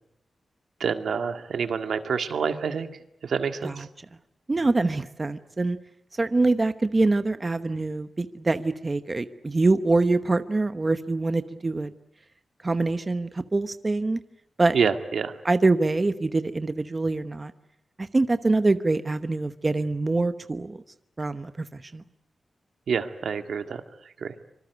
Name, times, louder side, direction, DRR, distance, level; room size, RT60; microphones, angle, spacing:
voice 1, 0.8-2.9 3.2-3.9 14.7-15.4 22.9-23.8 24.2-24.3, right 6 dB, 85° right, 7 dB, 1.8 m, -27 dB
voice 2, 4.5-5.8 6.2-11.9 12.6-14.2 14.6-14.8 15.4-17.5 18.0-20.8 21.2-22.0, right 3 dB, 25° right, 10 dB, 1.0 m, -24 dB
25.5 x 25.0 x 8.1 m, 0.77 s
wide cardioid pair, 140°, 0 cm